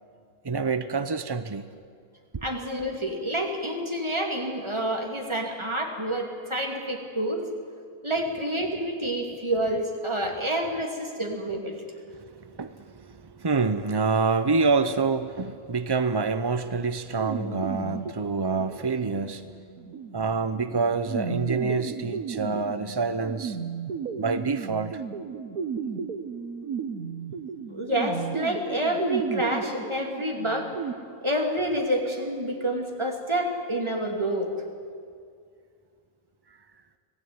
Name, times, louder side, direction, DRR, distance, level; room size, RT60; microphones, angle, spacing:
voice 1, 0.4-1.6 2.3-2.5 12.2-19.5 20.1-23.6 24.2-25.0, right 4 dB, 40° right, 11 dB, 0.3 m, -27 dB
voice 2, 2.4-7.5 8.0-11.8 27.7-30.7 31.2-34.5, right 1 dB, 20° right, 2 dB, 2.9 m, -28 dB
sound 1, 17.2-30.9, right 6 dB, 90° right, 1.6 m, -34 dB
25.5 x 17.5 x 9.6 m, 2.2 s
omnidirectional pair, 1.5 m